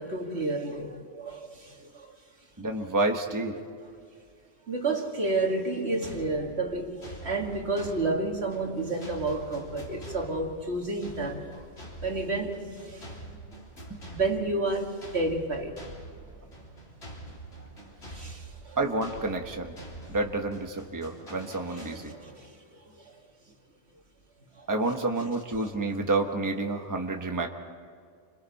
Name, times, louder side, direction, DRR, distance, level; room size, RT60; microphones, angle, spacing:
voice 1, 0.0-2.1 3.5-3.7 4.7-11.7 12.0-13.1 14.1-15.8 16.1-16.2 18.1-18.8 21.7-23.2 24.5-24.7, right 2 dB, 75° right, 2.5 m, -31 dB
voice 2, 2.6-3.5 13.9-14.0 18.8-19.7 20.1-22.1 24.7-27.5, right 2 dB, 15° right, 1.3 m, -29 dB
sound 1, 6.0-22.5, right 1 dB, 75° left, 3.9 m, -46 dB
30.0 x 26.5 x 4.2 m
omnidirectional pair, 1.1 m